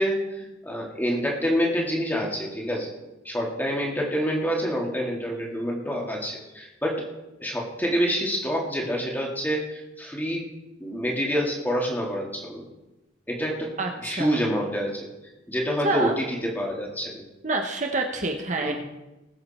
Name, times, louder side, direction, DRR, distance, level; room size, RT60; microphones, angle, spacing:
voice 1, 0.0-2.9 3.2-7.0 7.4-10.4 10.8-12.6 13.3-13.7 14.0-15.1 15.5-17.2 18.6-18.8, equal, 10° left, -2 dB, 2.5 m, -27 dB
voice 2, 13.8-14.4 15.8-16.1 17.4-18.8, right 2 dB, 40° right, 3 dB, 1.1 m, -27 dB
20.0 x 8.5 x 4.4 m, 1.0 s
head